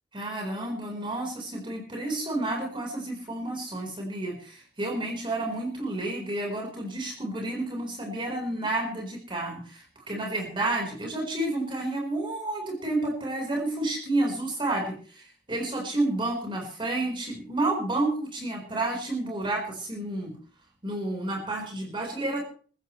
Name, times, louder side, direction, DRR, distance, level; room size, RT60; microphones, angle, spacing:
voice 1, 0.1-20.3 20.8-22.4, right 2 dB, 30° right, 0 dB, 4.8 m, -30 dB
23.5 x 14.5 x 3.3 m, 0.42 s
head